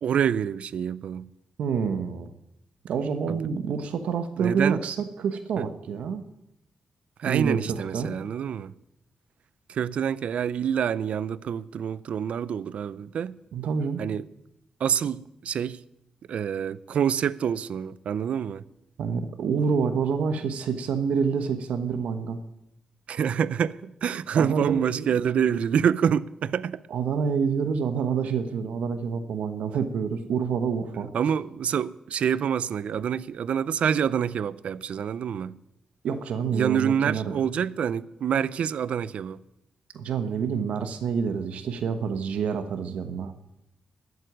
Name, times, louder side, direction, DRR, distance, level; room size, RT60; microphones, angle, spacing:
voice 1, 0.0-1.3 3.3-3.4 4.4-4.8 7.2-8.7 9.7-13.4 14.0-14.2 14.8-15.8 16.3-18.7 23.1-26.8 31.1-35.6 36.5-39.4, right 8 dB, 70° right, 0.5 m, -27 dB
voice 2, 1.6-2.3 2.8-6.2 7.2-8.1 13.5-14.0 19.0-22.4 24.3-25.0 26.9-31.1 36.0-37.4 39.9-43.3, right 6 dB, 90° right, 1.1 m, -27 dB
13.0 x 8.1 x 9.4 m
cardioid pair, 95°, 2 cm